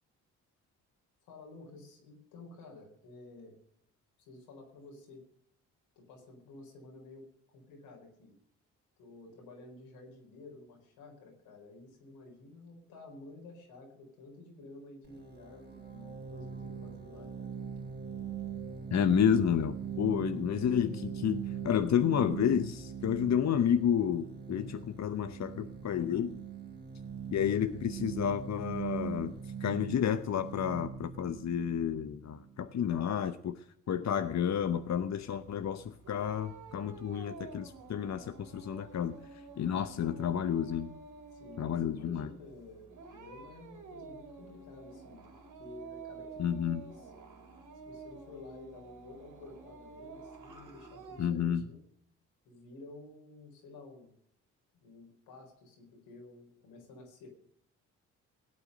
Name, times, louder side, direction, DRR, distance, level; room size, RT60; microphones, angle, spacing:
voice 1, 1.2-3.6 4.2-5.2 5.9-8.4 9.0-17.5 41.3-45.3 45.6-47.1 47.8-51.8 52.4-54.1 54.8-57.3, left 2 dB, 85° left, 1 dB, 4.6 m, -52 dB
sound 1, 15.1-32.6, right 8 dB, 30° right, 3.8 m, -41 dB
voice 2, 18.9-26.4 27.3-29.4 29.6-39.2 39.6-40.9 41.6-42.3 46.4-46.8 51.2-51.6, left 9 dB, 50° left, 11 dB, 0.9 m, -30 dB
sound 2, 34.3-51.3, right 4 dB, 60° right, 3.4 m, -50 dB
17.5 x 8.8 x 6.6 m, 0.69 s
hypercardioid pair, 45°, 35 cm